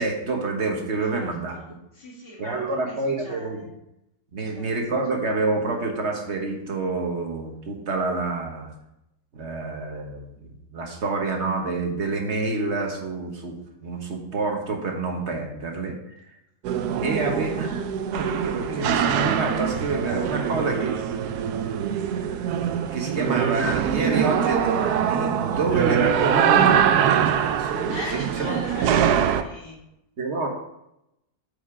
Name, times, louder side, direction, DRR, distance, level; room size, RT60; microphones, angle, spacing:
voice 1, 0.0-1.5 2.4-3.6 4.3-8.7 9.3-13.5 13.8-16.0 17.0-21.0 22.1-22.6 22.9-28.0 28.4-28.6 30.2-30.5, right 3 dB, 45° right, 2 dB, 1.5 m, -28 dB
voice 2, 1.0-3.7 4.4-4.8 5.1-5.2 17.3-17.6 25.5-26.2 27.9-29.8, left 2 dB, 70° left, -4 dB, 2.8 m, -41 dB
sound 1, 16.6-29.4, right 9 dB, 75° right, 1.1 m, -23 dB
8.5 x 5.0 x 4.9 m, 0.83 s
omnidirectional pair, 1.8 m